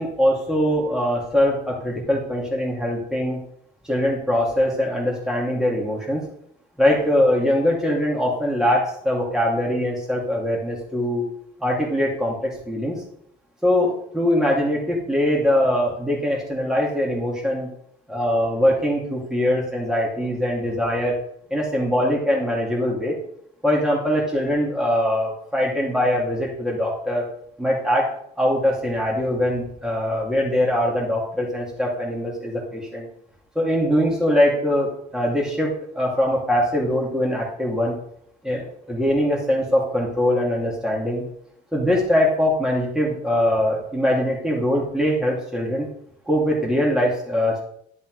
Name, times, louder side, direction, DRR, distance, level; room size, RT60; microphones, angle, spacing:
voice 1, 0.0-3.4 3.8-6.2 6.8-11.3 11.6-13.0 13.6-17.7 18.1-21.2 21.5-23.2 23.6-27.2 27.6-28.1 28.4-33.1 33.5-38.0 38.4-41.2 41.7-45.9 46.3-47.6, left 1 dB, 5° right, -3 dB, 2.5 m, -22 dB
11.5 x 5.4 x 4.8 m, 0.68 s
cardioid pair, 110°, 17 cm